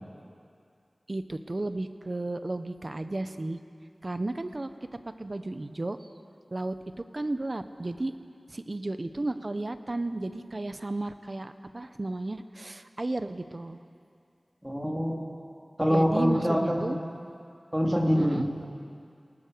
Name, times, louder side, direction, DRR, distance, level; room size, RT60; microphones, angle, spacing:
voice 1, 1.1-3.6 4.0-4.7 5.2-6.0 6.5-6.7 7.1-8.1 8.5-13.8 15.9-17.0 18.2-18.6, right 2 dB, 50° right, 9 dB, 1.2 m, -33 dB
voice 2, 14.6-15.2 15.8-17.0 17.7-18.4, equal, 10° right, -1 dB, 3.6 m, -25 dB
28.5 x 18.5 x 7.0 m, 2.4 s
wide cardioid pair, 45°, 0 cm